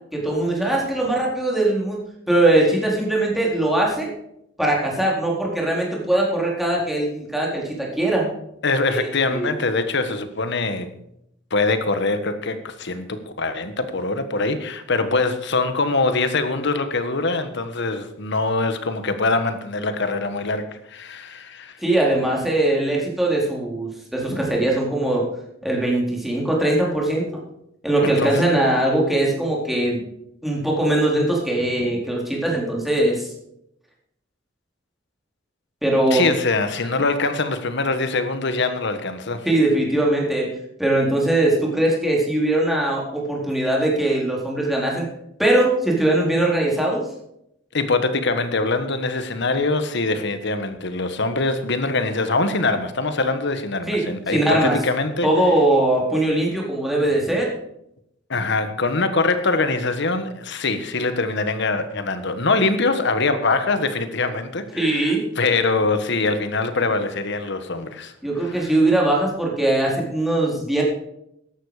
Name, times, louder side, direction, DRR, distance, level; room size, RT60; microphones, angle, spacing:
voice 1, 0.1-4.1 4.6-8.3 8.9-9.0 9.3-9.6 21.8-25.3 25.6-27.3 27.8-30.0 30.4-33.3 35.8-36.2 39.4-40.5 40.8-45.1 45.4-47.0 53.9-54.8 55.2-57.5 64.7-65.2 68.2-70.8, right 1 dB, ahead, 4.1 m, -21 dB
voice 2, 8.6-10.9 11.5-21.8 28.0-28.5 36.1-39.5 47.7-55.3 58.3-68.1 68.4-68.7, left 3 dB, 65° left, 1.5 m, -23 dB
14.0 x 11.5 x 5.0 m
head